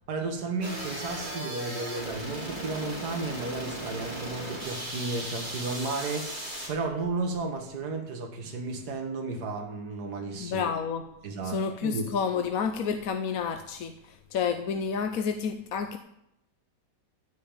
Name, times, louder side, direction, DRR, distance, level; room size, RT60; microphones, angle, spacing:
voice 1, 0.1-10.7 11.2-12.0, right 3 dB, 60° right, 2 dB, 2.1 m, -33 dB
sound 1, 0.6-6.7, right 1 dB, 25° right, 3.9 m, -37 dB
voice 2, 10.4-11.1 11.4-16.0, left 6 dB, 60° left, 7 dB, 1.1 m, -30 dB
15.0 x 5.4 x 9.0 m, 0.79 s
omnidirectional pair, 2.0 m